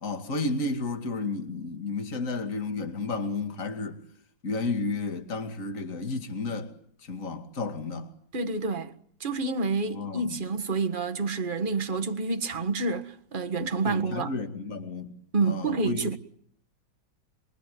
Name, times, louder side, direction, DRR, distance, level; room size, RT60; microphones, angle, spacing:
voice 1, 0.0-4.0 4.4-6.7 7.0-8.1 9.9-10.4 13.8-15.2 15.4-16.2, left 3 dB, 45° left, 2.7 m, -32 dB
voice 2, 8.3-8.9 9.2-14.3 15.3-16.2, right 3 dB, 30° right, 1.7 m, -28 dB
26.5 x 23.5 x 9.4 m
omnidirectional pair, 2.0 m